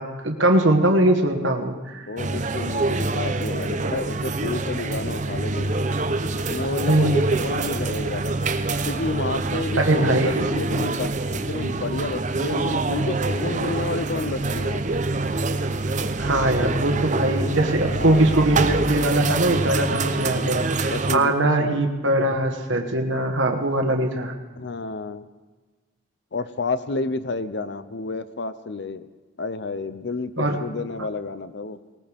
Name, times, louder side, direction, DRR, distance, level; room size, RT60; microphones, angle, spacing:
voice 1, 0.0-2.1 6.9-7.3 9.8-10.5 16.2-24.3 30.4-30.6, right 1 dB, 70° right, 4 dB, 1.4 m, -21 dB
voice 2, 2.1-5.8 6.5-8.3 8.9-15.0 18.0-18.4 20.9-21.3 21.6-21.9 24.6-25.3 26.3-29.1 29.4-31.8, left 3 dB, 55° left, 13 dB, 0.6 m, -30 dB
sound 1, 2.2-21.2, right 3 dB, 40° right, 0.7 m, -25 dB
19.5 x 19.5 x 3.5 m, 1.3 s
head